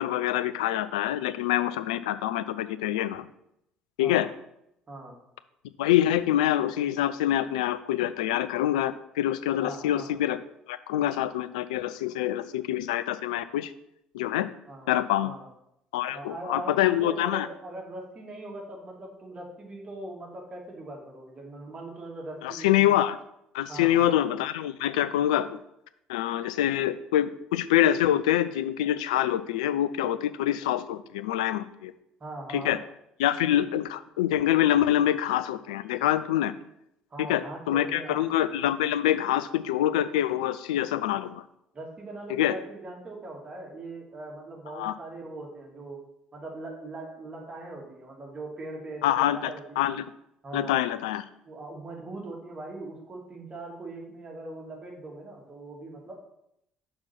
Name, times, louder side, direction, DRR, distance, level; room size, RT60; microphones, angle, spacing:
voice 1, 0.0-3.3 4.0-4.3 5.8-10.4 10.7-13.7 14.1-14.5 14.9-15.3 15.9-17.5 22.4-23.2 23.5-25.6 26.1-31.9 32.5-32.8 33.2-36.5 37.3-41.4 42.4-42.5 44.8-44.9 49.0-49.5 49.8-50.0 50.5-51.2, left 12 dB, 70° left, 13 dB, 0.4 m, -25 dB
voice 2, 4.0-4.3 4.9-5.1 9.6-10.1 14.7-15.5 16.1-23.0 23.7-24.1 32.2-32.8 37.1-38.2 41.7-46.1 46.3-49.9 50.4-50.8 51.5-56.1, right 2 dB, 30° right, -1 dB, 2.2 m, -40 dB
6.0 x 4.3 x 5.8 m, 0.79 s
figure-of-eight pair, 55°, 4 cm